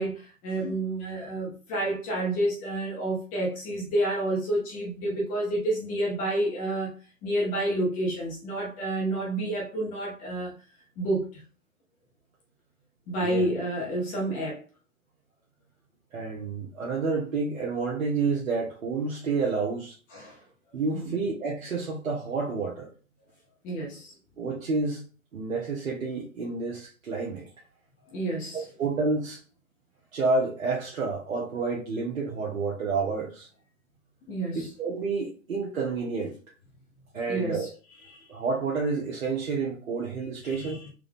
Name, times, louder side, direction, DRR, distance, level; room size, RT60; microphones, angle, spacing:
voice 1, 0.0-10.5 11.0-11.4 13.1-14.6 20.1-20.4 20.9-21.1 23.6-24.1 28.1-28.6 34.3-34.7 37.3-37.7 38.1-38.3 40.4-40.9, right 1 dB, 20° left, 0.9 m, -29 dB
voice 2, 16.1-20.0 20.7-22.9 24.4-25.0 25.3-27.5 28.8-29.4 30.1-33.5 34.5-36.3 37.1-37.7 38.3-40.8, right 4 dB, 70° right, 1.1 m, -29 dB
3.7 x 2.5 x 3.4 m
hypercardioid pair, 135°, 42 cm